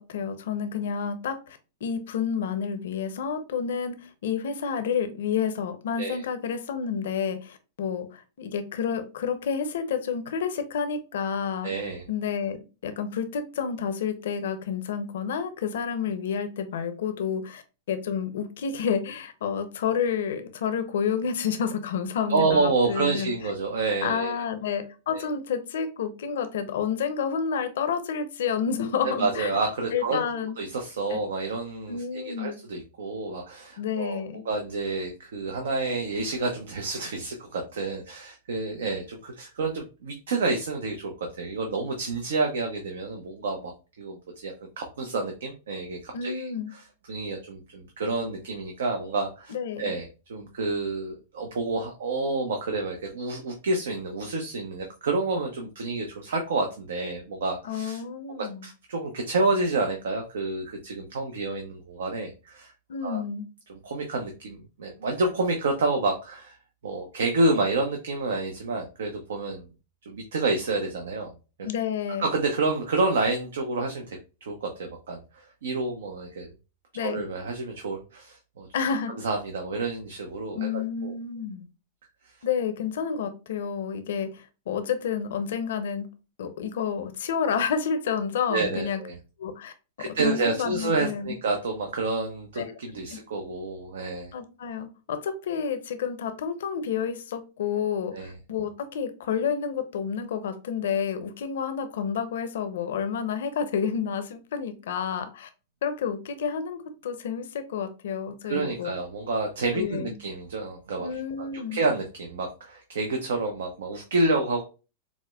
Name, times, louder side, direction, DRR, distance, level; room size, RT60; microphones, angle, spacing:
voice 1, 0.0-11.7 12.1-23.3 24.0-29.5 29.9-30.6 31.1-31.2 31.9-32.6 33.8-34.4 46.1-46.7 49.5-49.9 57.6-58.7 62.9-63.4 71.6-72.2 76.9-77.2 78.7-79.2 80.5-81.7 82.4-86.1 86.4-89.0 89.4-89.7 90.2-91.4 92.6-92.7 93.1-93.2 94.3-105.5 105.8-108.9 109.7-110.2 111.0-111.8, left 7 dB, 75° left, 9 dB, 0.6 m, -30 dB
voice 2, 11.6-12.0 22.3-24.4 25.1-25.3 29.0-41.1 41.4-46.5 47.1-58.0 58.4-62.7 63.0-63.2 63.7-66.6 66.8-69.7 70.1-71.3 71.6-71.7 72.2-74.2 74.5-76.5 77.0-78.7 79.2-80.7 81.0-81.1 88.5-89.2 90.0-94.3 98.1-98.3 108.5-111.1 111.4-114.6, right 3 dB, 85° right, 3 dB, 0.6 m, -29 dB
4.9 x 2.1 x 2.3 m, 0.32 s
hypercardioid pair, 125°, 0 cm